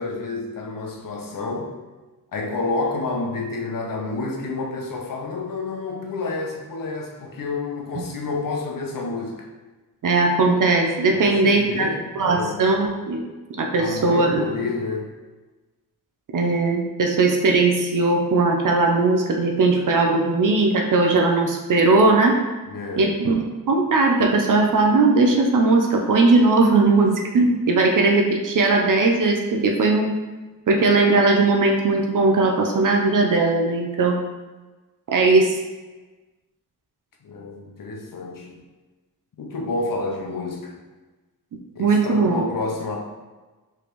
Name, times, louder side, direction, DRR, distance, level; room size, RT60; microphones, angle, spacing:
voice 1, 0.0-1.8 2.3-9.5 11.1-12.7 13.8-15.1 22.7-23.1 37.2-38.6 39.4-40.8 41.7-43.0, left 3 dB, 65° left, 0 dB, 0.8 m, -29 dB
voice 2, 10.0-11.9 12.2-13.2 13.5-14.5 16.3-22.4 23.0-30.1 30.7-34.2 35.1-35.6 41.8-42.4, right 3 dB, 60° right, 1 dB, 0.6 m, -19 dB
5.0 x 3.4 x 3.0 m, 1.2 s
wide cardioid pair, 180°, 35 cm